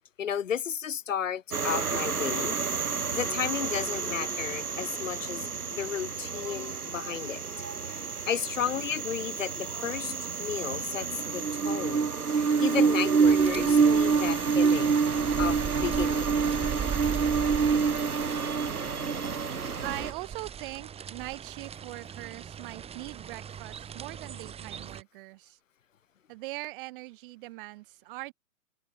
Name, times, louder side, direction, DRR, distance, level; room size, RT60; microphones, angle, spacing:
voice 1, 0.2-2.6 3.1-7.4 7.9-12.1 12.3-15.0 15.4-16.4, left 8 dB, 60° left, 2.4 m, -33 dB
sound 1, 1.5-20.1, right 5 dB, 90° right, 1.1 m, -27 dB
sound 2, 13.2-25.0, right 8 dB, 15° right, 3.5 m, -39 dB
voice 2, 19.8-25.6 26.3-28.3, right 21 dB, 35° right, 6.3 m, -41 dB
figure-of-eight pair, 120°, 43 cm